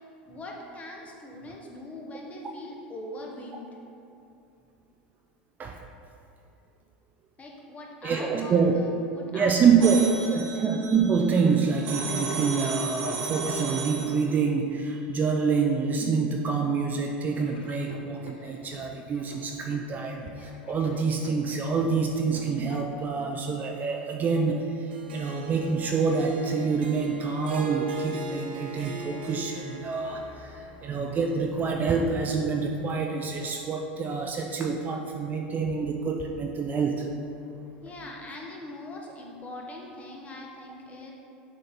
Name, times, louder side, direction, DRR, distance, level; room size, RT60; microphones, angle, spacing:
voice 1, 0.3-3.8 7.4-10.7 37.8-41.1, left 1 dB, 25° left, 0 dB, 1.1 m, -42 dB
voice 2, 8.0-8.8 9.3-10.0 10.3-37.1, right 5 dB, 30° right, 2 dB, 0.5 m, -26 dB
sound 1, 9.8-14.3, right 4 dB, 65° right, 1.0 m, -34 dB
Laughter / Drum, 17.3-23.3, left 3 dB, 85° left, 0.5 m, -48 dB
Harp, 24.9-31.3, right 3 dB, 85° right, 0.6 m, -39 dB
6.5 x 4.2 x 4.2 m, 2.7 s
hypercardioid pair, 95°, 5 cm